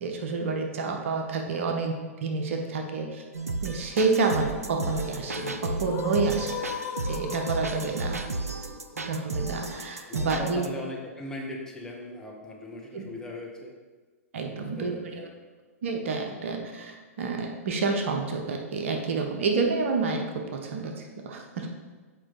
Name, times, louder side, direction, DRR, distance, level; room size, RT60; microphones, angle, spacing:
voice 1, 0.0-1.9 2.2-3.2 3.6-6.6 7.0-8.2 9.0-10.6 12.9-13.0 14.3-14.9 15.8-21.7, right 4 dB, 60° right, 3 dB, 0.9 m, -29 dB
sound 1, 3.3-10.7, right 3 dB, 85° right, 0.5 m, -33 dB
sound 2, 4.6-10.6, left 8 dB, 30° left, 0.4 m, -39 dB
voice 2, 8.2-8.7 10.1-13.7 14.5-15.3, left 2 dB, 5° left, -2 dB, 1.3 m, -39 dB
7.6 x 4.9 x 3.8 m, 1.4 s
figure-of-eight pair, 110°, 8 cm